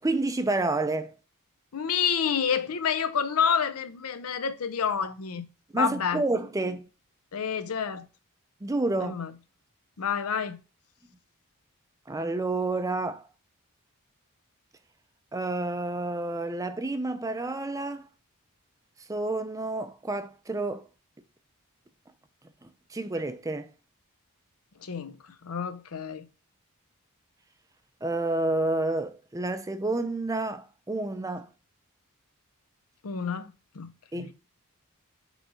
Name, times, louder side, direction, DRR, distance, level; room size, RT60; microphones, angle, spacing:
voice 1, 0.0-1.1 5.7-6.9 8.6-9.1 12.1-13.2 15.3-18.1 19.1-20.8 22.6-23.7 28.0-31.5 34.1-34.3, right 2 dB, 15° right, 0.4 m, -29 dB
voice 2, 1.7-5.5 5.7-6.2 7.3-8.1 9.0-9.3 10.0-10.6 24.8-25.1 25.4-26.3 33.0-34.3, left 7 dB, 75° left, 0.6 m, -29 dB
5.1 x 3.9 x 4.8 m
head